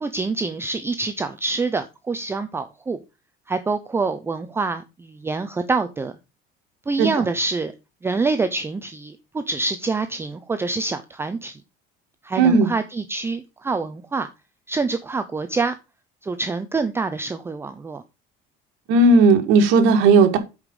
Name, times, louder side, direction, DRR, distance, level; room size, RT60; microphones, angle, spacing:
voice 1, 0.0-3.0 3.5-6.1 6.9-7.7 8.0-11.6 12.2-14.3 14.7-15.7 16.2-18.0, right 3 dB, 10° right, 0.5 m, -26 dB
voice 2, 7.0-7.3 12.4-12.7 18.9-20.4, right 3 dB, 75° right, 1.9 m, -15 dB
8.1 x 5.1 x 5.3 m
cardioid pair, 155°, 20 cm